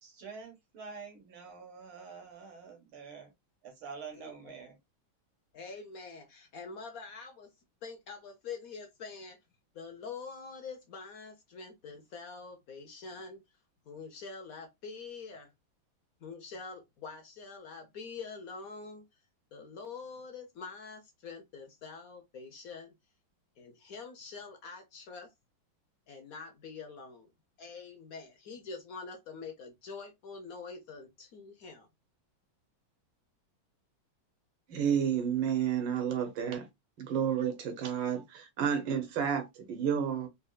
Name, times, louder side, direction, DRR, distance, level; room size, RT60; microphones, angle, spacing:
voice 1, 0.0-3.3 3.6-4.8, right 5 dB, 85° right, 2.1 m, -47 dB
voice 2, 5.5-7.5 7.8-9.4 9.7-13.4 13.9-15.5 16.2-19.0 19.5-22.9 23.6-25.3 26.1-27.3 27.6-31.9, left 4 dB, 60° left, 1.0 m, -45 dB
voice 3, 34.7-36.7 37.0-40.3, right 8 dB, 65° right, 1.7 m, -31 dB
4.2 x 3.5 x 2.3 m
omnidirectional pair, 2.2 m